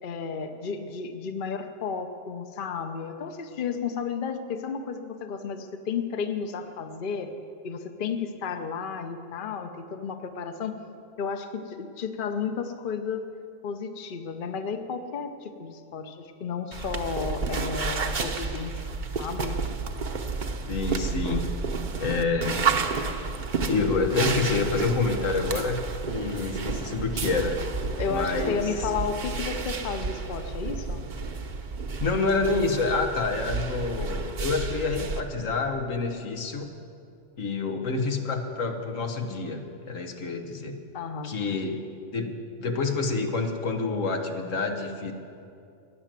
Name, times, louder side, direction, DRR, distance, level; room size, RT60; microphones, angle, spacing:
voice 1, 0.0-7.3 7.6-10.8 11.2-13.2 13.6-18.7 19.2-19.6 23.7-23.9 24.2-24.4 28.0-31.1 40.9-41.3, left 6 dB, 45° left, 7 dB, 0.9 m, -32 dB
sound 1, 16.7-35.2, right 4 dB, 45° right, 0.9 m, -31 dB
voice 2, 20.7-21.5 22.0-22.6 23.6-27.6 28.1-28.9 32.0-36.7 37.4-39.6 39.9-40.8 41.2-45.1, left 3 dB, 85° left, 4 dB, 1.6 m, -28 dB
16.0 x 10.5 x 7.5 m, 2.5 s
omnidirectional pair, 1.3 m